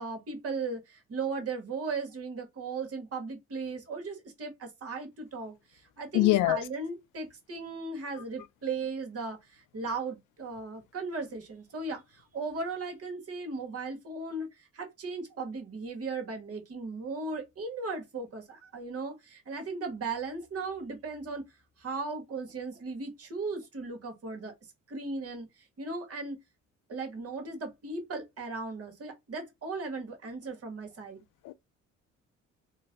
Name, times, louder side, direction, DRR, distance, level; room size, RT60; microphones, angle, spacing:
voice 1, 0.0-24.5 24.9-26.4 26.9-31.2, right 3 dB, 50° right, 1.5 m, -37 dB
voice 2, 6.1-6.6 31.4-31.5, left 16 dB, 85° left, 0.5 m, -23 dB
3.1 x 2.2 x 3.9 m
cardioid pair, 90°, 30 cm